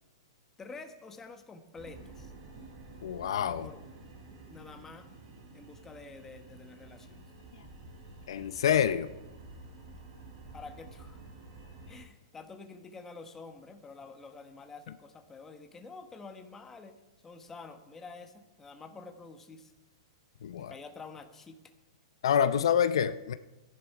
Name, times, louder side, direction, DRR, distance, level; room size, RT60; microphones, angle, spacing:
voice 1, 0.6-2.3 3.6-3.8 4.5-5.1 5.5-7.2 10.5-11.2 11.9-19.7 20.6-21.6, left 4 dB, 15° left, 7 dB, 1.1 m, -48 dB
sound 1, 1.8-12.0, right 2 dB, 50° right, 3.9 m, -50 dB
voice 2, 3.0-3.7 8.3-9.1 20.4-20.7 22.2-23.3, left 8 dB, 75° left, 12 dB, 0.6 m, -27 dB
14.5 x 10.5 x 4.7 m, 1.1 s
hypercardioid pair, 140°, 3 cm